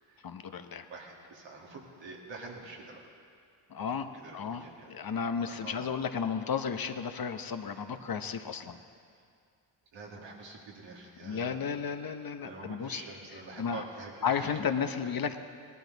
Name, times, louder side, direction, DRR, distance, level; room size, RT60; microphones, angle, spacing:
voice 1, 0.2-0.9 3.7-8.8 11.2-13.0 13.6-13.8 14.2-15.4, left 6 dB, 50° left, 8 dB, 0.9 m, -33 dB
voice 2, 0.9-3.0 3.8-3.9 4.1-4.9 5.5-5.9 7.9-8.0 9.9-11.6 12.4-14.6, right 3 dB, 80° right, -2 dB, 2.4 m, -46 dB
18.5 x 12.0 x 4.0 m, 2.3 s
supercardioid pair, 50°, 45 cm